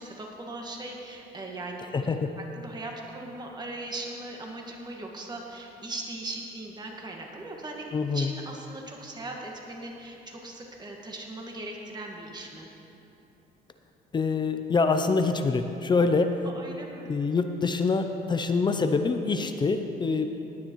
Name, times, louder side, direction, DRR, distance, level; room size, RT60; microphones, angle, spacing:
voice 1, 0.0-7.8 8.1-12.7 16.4-17.1, right 2 dB, 25° right, 0 dB, 1.7 m, -39 dB
voice 2, 1.9-2.3 7.9-8.3 14.1-16.3 17.1-20.3, left 4 dB, 25° left, 7 dB, 0.5 m, -25 dB
17.5 x 9.6 x 3.1 m, 3.0 s
cardioid pair, 110°, 17 cm